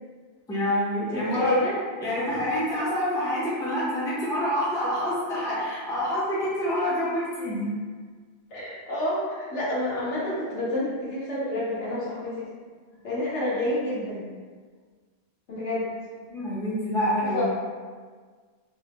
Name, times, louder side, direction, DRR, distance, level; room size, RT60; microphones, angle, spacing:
voice 1, 0.5-1.6 2.0-7.7 16.3-17.4, equal, 5° left, -8 dB, 0.5 m, -27 dB
voice 2, 1.1-1.8 8.5-12.5 13.0-14.2 15.5-15.9 17.3-17.4, left 1 dB, 65° left, -8 dB, 1.3 m, -29 dB
3.8 x 2.0 x 2.8 m, 1.5 s
omnidirectional pair, 1.3 m